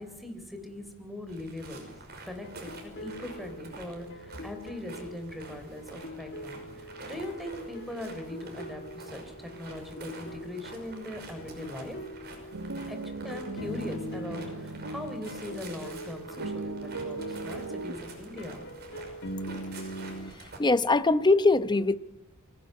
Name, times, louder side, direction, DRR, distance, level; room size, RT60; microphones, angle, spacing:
voice 1, 0.0-1.8 2.2-12.0 12.9-13.0 13.2-18.6, left 1 dB, ahead, 3.7 m, -40 dB
sound 1, 1.3-20.6, right 2 dB, 50° right, 5.6 m, -47 dB
sound 2, 2.4-20.3, equal, 55° left, 2.0 m, -43 dB
sound 3, 12.5-15.9 16.4-17.9, right 3 dB, 85° right, 1.5 m, -38 dB
voice 2, 20.6-22.0, left 3 dB, 20° left, 0.8 m, -22 dB
24.0 x 17.5 x 9.6 m
head